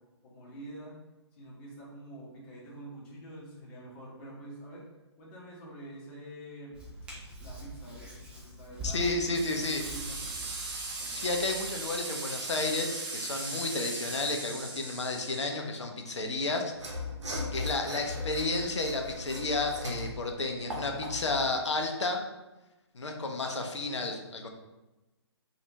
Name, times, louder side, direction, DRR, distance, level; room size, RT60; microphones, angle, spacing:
voice 1, 0.2-1.0 1.4-4.8 5.2-6.8 7.4-10.5 11.0-11.4, right 1 dB, 20° left, -6 dB, 0.9 m, -47 dB
Hands, 6.7-11.7, equal, 5° right, 0.5 m, -43 dB
voice 2, 8.8-9.8 11.1-16.7 17.5-22.2 22.9-24.5, left 3 dB, 75° left, 3 dB, 0.6 m, -32 dB
sound 1, 9.3-15.5, right 3 dB, 45° right, 0.8 m, -38 dB
Mechanisms / Sawing, 16.7-21.5, left 2 dB, 80° right, 0.8 m, -38 dB
3.2 x 2.4 x 2.9 m, 1.1 s
figure-of-eight pair, 140°, 15 cm